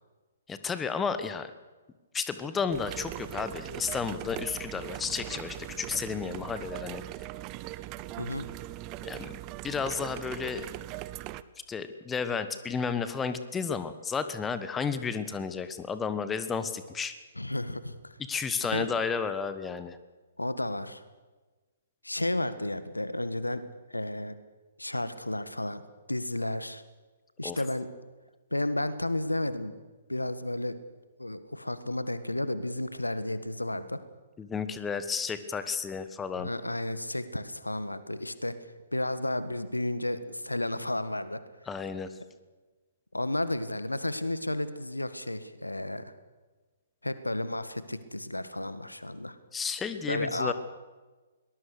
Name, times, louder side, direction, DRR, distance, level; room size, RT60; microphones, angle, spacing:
voice 1, 0.5-1.5 2.1-7.0 9.0-9.4 9.6-10.7 11.7-17.1 18.3-20.0 27.4-27.6 34.4-36.5 41.7-42.1 49.5-50.5, left 5 dB, 10° left, 11 dB, 1.3 m, -32 dB
sound 1, 2.7-11.4, right 15 dB, 30° right, 0.7 m, -40 dB
voice 2, 8.2-8.5 17.4-18.2 18.7-18.9 20.4-21.0 22.0-23.6 23.9-24.3 24.8-25.8 26.1-26.8 27.4-27.9 28.5-29.7 30.1-30.8 31.2-34.0 36.4-38.6 38.9-41.4 43.1-46.1 47.0-49.4 50.1-50.5, left 1 dB, 85° left, 13 dB, 1.6 m, -32 dB
22.5 x 19.5 x 6.7 m, 1.3 s
figure-of-eight pair, 125°, 0 cm